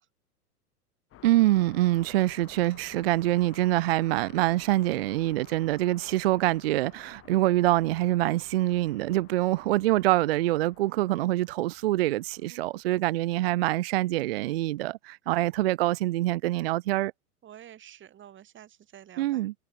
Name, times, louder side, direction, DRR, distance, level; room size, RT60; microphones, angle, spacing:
sound 1, 1.1-12.9, left 13 dB, 30° left, 4.5 m, -54 dB
voice 1, 1.2-17.1 19.2-19.5, right 16 dB, 45° right, 0.4 m, -25 dB
voice 2, 17.4-19.5, right 11 dB, 25° right, 6.3 m, -49 dB
hypercardioid pair, 110°, 46 cm